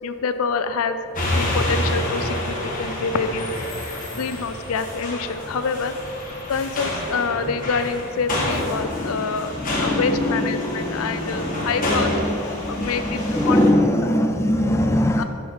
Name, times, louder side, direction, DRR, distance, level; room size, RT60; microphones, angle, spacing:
voice 1, 0.0-1.0 1.3-3.5 4.1-6.0 6.5-9.5 9.8-12.1 12.7-13.6 15.2-15.3, left 5 dB, 70° left, 10 dB, 0.5 m, -26 dB
sound 1, 1.1-13.7, left 1 dB, 35° left, 1.5 m, -28 dB
voice 2, 8.5-15.2, left 1 dB, 10° left, 4 dB, 0.3 m, -23 dB
11.5 x 6.2 x 3.6 m, 2.7 s
head